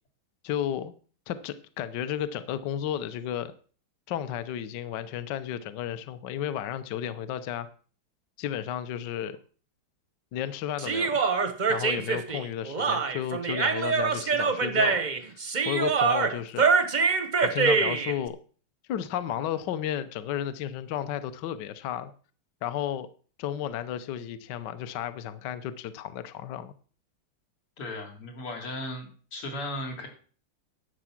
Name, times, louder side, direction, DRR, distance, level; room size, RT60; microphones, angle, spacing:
voice 1, 0.4-0.9 1.3-3.5 4.1-7.7 8.4-9.4 10.3-11.2 11.7-15.4 15.6-16.7 17.4-18.4 18.9-22.1 22.6-23.1 23.4-26.7, left 10 dB, 65° left, 12 dB, 1.2 m, -33 dB
Human voice, 10.8-18.1, right 5 dB, 50° right, 0.5 m, -25 dB
voice 2, 27.8-30.1, left 1 dB, 85° left, 2 dB, 3.6 m, -36 dB
11.0 x 8.0 x 5.9 m, 0.41 s
omnidirectional pair, 2.4 m